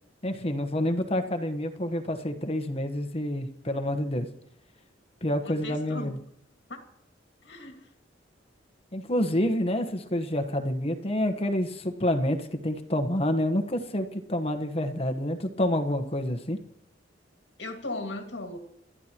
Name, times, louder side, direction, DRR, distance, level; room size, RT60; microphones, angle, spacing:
voice 1, 0.2-4.3 5.2-6.2 8.9-16.6, left 1 dB, 30° left, 7 dB, 1.1 m, -28 dB
voice 2, 5.5-6.1 6.7-6.8 7.4-7.8 17.6-18.6, left 2 dB, 65° left, 4 dB, 2.1 m, -37 dB
28.0 x 12.5 x 3.0 m, 0.77 s
head